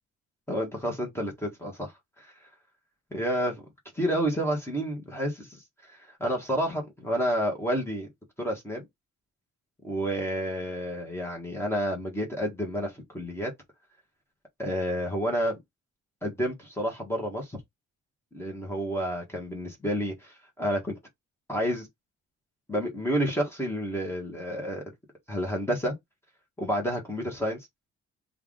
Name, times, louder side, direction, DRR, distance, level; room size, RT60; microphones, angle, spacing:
voice 1, 0.5-1.9 2.2-2.3 3.1-3.6 3.9-5.6 6.1-8.1 8.4-8.9 9.8-13.5 14.6-15.6 16.2-17.6 18.3-20.9 21.5-21.9 22.7-24.8 25.3-25.9 26.6-27.6, equal, 10° left, 1.3 m, -30 dB
3.3 x 2.5 x 3.6 m
cardioid pair, 90°, 30 cm